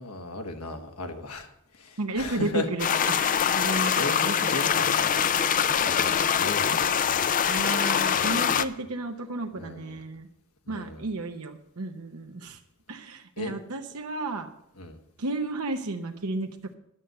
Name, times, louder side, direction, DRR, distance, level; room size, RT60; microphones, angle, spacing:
voice 1, 0.0-2.7 3.5-4.1 4.5-7.2 8.1-8.7 9.6-10.0 10.7-11.1 13.4-13.5 14.8-15.0, left 2 dB, 80° left, 4 dB, 1.5 m, -37 dB
voice 2, 2.0-5.0 7.5-10.3 10.7-12.6 12.9-14.5 15.2-16.7, right 2 dB, 75° right, 4 dB, 0.9 m, -33 dB
sound 1, 2.8-8.6, left 8 dB, 40° left, 0.4 m, -24 dB
11.0 x 6.8 x 7.8 m, 0.77 s
head